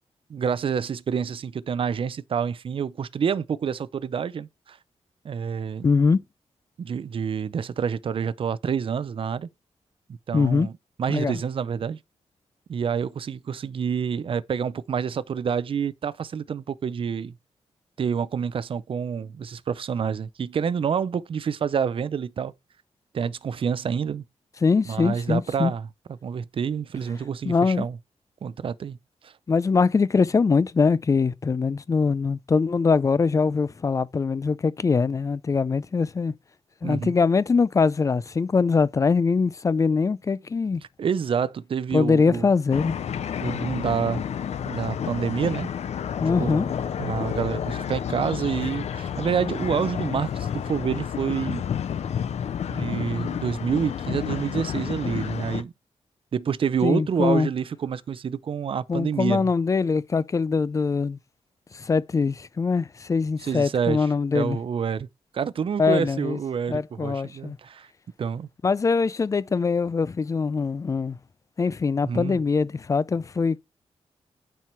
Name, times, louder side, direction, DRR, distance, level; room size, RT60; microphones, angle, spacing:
voice 1, 0.3-4.8 5.2-5.9 6.8-9.5 10.3-10.7 11.0-12.0 12.7-17.3 18.0-22.5 23.1-24.2 24.9-25.9 26.2-28.0 28.4-29.0 29.2-29.3 36.8-37.1 41.0-42.5 43.4-44.2 44.6-45.7 46.4-46.6 47.0-51.7 52.7-55.7 56.3-59.5 63.4-64.1 64.3-65.1 65.3-67.9 68.2-68.5 72.0-72.4, right 7 dB, 50° right, 0.5 m, -28 dB
voice 2, 5.8-6.2 10.3-10.7 11.1-11.4 24.6-25.7 27.4-27.9 29.5-36.3 36.8-40.8 41.9-42.9 46.2-46.7 56.8-57.5 58.9-61.2 61.7-64.6 65.8-66.4 66.7-67.6 68.6-71.2 71.6-73.6, left 4 dB, 30° left, 0.4 m, -22 dB
sound 1, 42.7-55.6, left 8 dB, 75° left, 0.6 m, -30 dB
9.1 x 4.6 x 4.4 m
wide cardioid pair, 125°, 11 cm